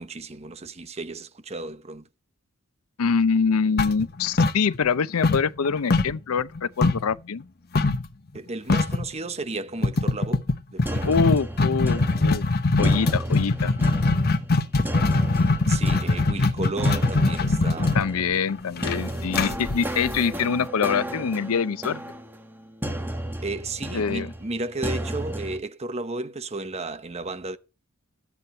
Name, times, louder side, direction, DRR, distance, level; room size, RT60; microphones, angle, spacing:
voice 1, 0.0-2.1 8.3-10.4 10.7-11.2 13.6-13.8 15.7-18.0 19.4-19.5 23.4-27.6, right 2 dB, 30° right, 0.9 m, -33 dB
voice 2, 3.0-7.4 11.1-12.4 12.8-13.7 17.9-22.0 23.9-24.3, left 6 dB, 85° left, 0.5 m, -25 dB
sound 1, 3.8-5.0 5.2-7.1 7.7-8.1 8.4-8.5 8.7-9.1 9.8-20.6, left 3 dB, 45° left, 0.9 m, -22 dB
sound 2, 10.9-25.6, right 1 dB, 10° right, 1.7 m, -34 dB
13.0 x 8.3 x 4.3 m
head